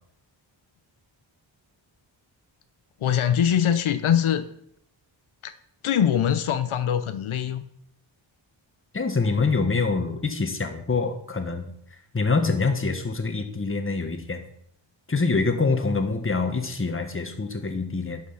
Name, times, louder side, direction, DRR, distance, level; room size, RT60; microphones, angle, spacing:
voice 1, 3.0-4.5 5.4-5.5 5.8-7.6, left 9 dB, 85° left, 10 dB, 0.8 m, -23 dB
voice 2, 8.9-11.7 12.1-14.4 15.1-18.2, left 4 dB, 25° left, 6 dB, 1.5 m, -25 dB
11.5 x 6.0 x 5.7 m, 0.69 s
wide cardioid pair, 100°, 47 cm